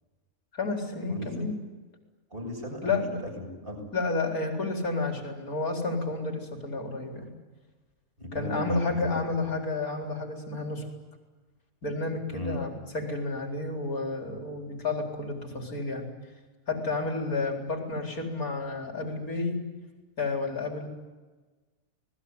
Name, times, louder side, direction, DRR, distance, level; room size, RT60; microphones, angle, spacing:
voice 1, 0.5-1.6 2.8-3.2 3.9-7.3 8.3-10.9 11.8-16.1 16.7-19.6 20.2-20.9, left 3 dB, 70° left, 2 dB, 4.6 m, -31 dB
voice 2, 2.3-3.8 8.2-8.7 12.3-12.6, equal, 35° right, 1 dB, 7.9 m, -37 dB
28.5 x 20.0 x 9.6 m, 1.3 s
omnidirectional pair, 1.6 m